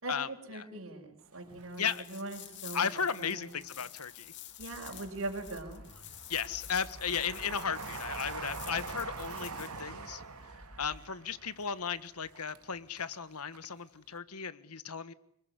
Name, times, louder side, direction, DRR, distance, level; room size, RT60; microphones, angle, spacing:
voice 1, 0.0-3.6 4.6-5.8, right 2 dB, 60° right, 1 dB, 5.4 m, -41 dB
Train, 1.3-2.6 3.0-4.0 4.5-13.3 13.5-13.6, right 4 dB, 85° right, 2.7 m, -45 dB
sound 1, 1.7-9.8, left 13 dB, 55° left, 2.5 m, -50 dB
voice 2, 2.7-4.3 6.3-10.2 10.8-15.1, left 6 dB, 90° left, 14 dB, 1.6 m, -35 dB
sound 2, 4.6-7.6 8.0-11.0, equal, 5° left, 3.9 m, -53 dB
26.5 x 23.0 x 9.9 m, 0.70 s
head